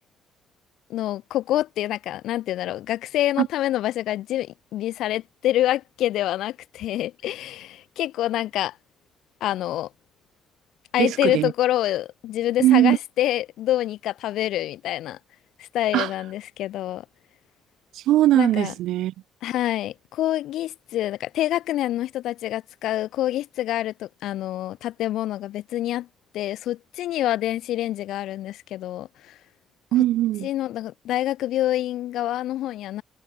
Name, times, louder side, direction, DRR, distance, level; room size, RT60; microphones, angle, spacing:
voice 1, 0.9-8.8 9.4-9.9 10.9-15.2 15.6-17.0 18.3-18.7 19.4-26.1 26.3-29.4 30.4-33.0, left 13 dB, 85° left, 1.9 m, -26 dB
voice 2, 11.0-11.5 12.6-13.0 15.9-16.1 17.9-19.1 29.9-30.5, right 14 dB, 85° right, 1.4 m, -20 dB
cardioid pair, 95°, 0 cm